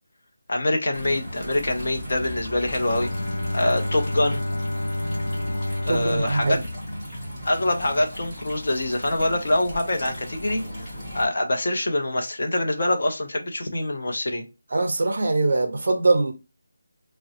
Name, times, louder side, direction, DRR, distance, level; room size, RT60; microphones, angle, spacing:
voice 1, 0.5-3.1 3.5-4.4 5.8-6.6 7.4-14.5, left 1 dB, 40° left, 0.6 m, -25 dB
sound 1, 0.9-11.3, equal, 5° left, 0.7 m, -36 dB
Bowed string instrument, 2.6-7.6, left 1 dB, 85° left, 0.4 m, -30 dB
voice 2, 5.9-6.6 14.7-16.3, right 2 dB, 40° right, 0.5 m, -22 dB
3.6 x 2.0 x 2.7 m
figure-of-eight pair, 180°, 0 cm